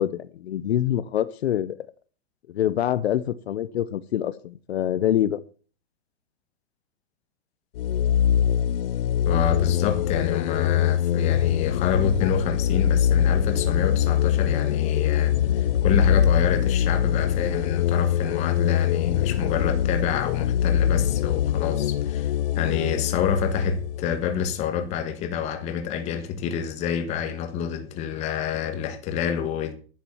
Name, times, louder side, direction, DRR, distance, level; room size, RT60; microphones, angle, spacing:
voice 1, 0.0-1.8 2.5-5.4, left 11 dB, 75° left, 0.9 m, -25 dB
sound 1, 7.7-25.2, left 10 dB, 60° left, 0.5 m, -23 dB
voice 2, 9.3-29.7, left 7 dB, 20° left, 1.5 m, -28 dB
11.0 x 7.6 x 7.1 m
hypercardioid pair, 170°, 32 cm